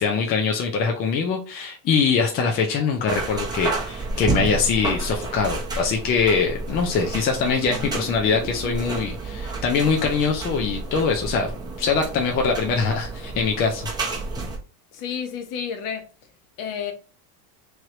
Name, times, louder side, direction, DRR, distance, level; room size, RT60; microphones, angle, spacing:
voice 1, 0.0-11.5 11.8-13.9, left 5 dB, 25° left, 0.4 m, -23 dB
sound 1, 3.1-14.6, right 3 dB, 10° right, 0.6 m, -30 dB
voice 2, 14.9-16.0 16.6-16.9, left 7 dB, 45° left, 0.9 m, -30 dB
3.1 x 3.1 x 3.7 m
supercardioid pair, 140°, 45 cm